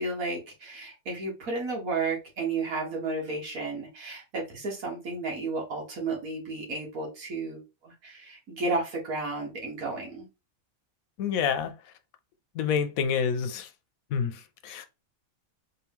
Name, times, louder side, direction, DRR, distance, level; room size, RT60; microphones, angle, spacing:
voice 1, 0.0-10.3, right 3 dB, 85° right, 1.9 m, -33 dB
voice 2, 11.2-11.9 12.5-13.7 14.1-14.9, left 7 dB, 85° left, 1.1 m, -28 dB
3.9 x 2.9 x 3.5 m
omnidirectional pair, 1.4 m